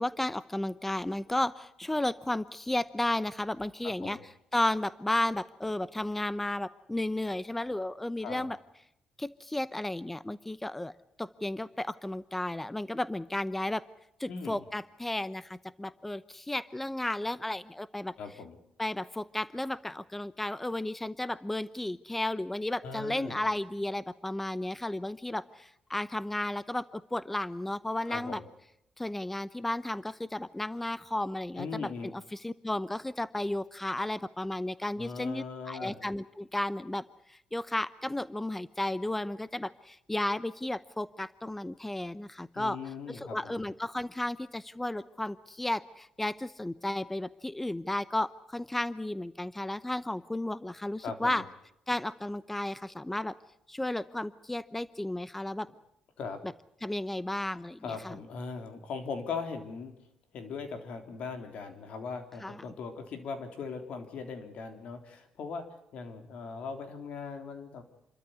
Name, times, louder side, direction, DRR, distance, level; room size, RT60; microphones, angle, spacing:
voice 1, 0.0-4.2 4.5-8.6 9.2-10.9 11.2-13.8 14.2-18.1 18.8-28.4 29.0-42.8 43.1-51.4 51.9-53.4 53.7-55.7 56.8-58.2 62.4-62.6, left 1 dB, 10° left, 16 dB, 0.8 m, -33 dB
voice 2, 3.8-4.2 8.2-8.5 14.3-14.6 18.2-18.6 22.8-23.4 28.1-28.5 31.6-32.1 35.0-36.0 42.6-43.6 51.0-51.4 56.2-56.4 57.8-59.9 60.3-65.7 65.9-67.8, left 5 dB, 70° left, 6 dB, 3.6 m, -39 dB
27.5 x 13.0 x 9.6 m, 0.80 s
cardioid pair, 95°, 2 cm